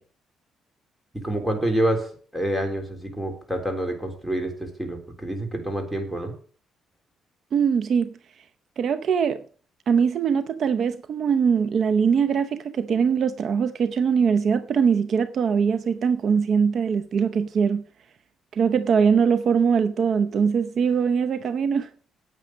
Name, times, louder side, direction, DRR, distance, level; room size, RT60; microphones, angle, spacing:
voice 1, 1.2-6.3, right 1 dB, 5° right, 3.6 m, -27 dB
voice 2, 7.5-8.2 8.8-9.4 9.9-17.8 18.5-21.9, right 6 dB, 60° right, 0.7 m, -22 dB
9.3 x 8.7 x 6.3 m
cardioid pair, 90°, 0 cm